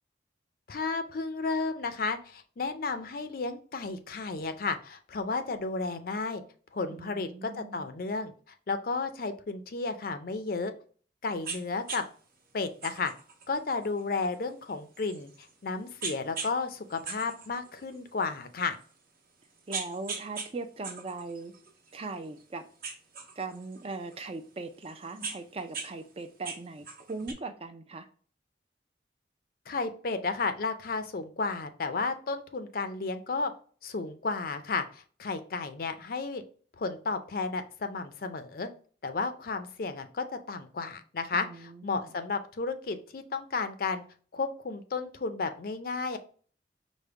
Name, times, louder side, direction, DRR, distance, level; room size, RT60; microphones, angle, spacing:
voice 1, 0.7-6.4 6.7-8.3 8.7-10.7 11.2-12.0 12.5-13.1 13.5-15.3 15.6-18.8 29.7-33.5 33.8-36.4 36.8-38.7 39.0-44.0 44.3-46.2, left 4 dB, 50° left, 9 dB, 0.5 m, -33 dB
voice 2, 6.9-7.9 19.7-21.5 21.9-22.6 23.4-28.1 41.3-42.1, right 3 dB, 30° right, 8 dB, 0.4 m, -39 dB
sound 1, 11.4-11.6 11.9-12.0 12.8-15.5 16.0-16.5 16.9-18.2 18.8-18.9 19.4-20.5 20.8-22.4 22.8-24.2 24.8-25.9 26.2-27.3, right 4 dB, 50° right, 1.1 m, -39 dB
5.0 x 2.1 x 4.6 m, 0.43 s
head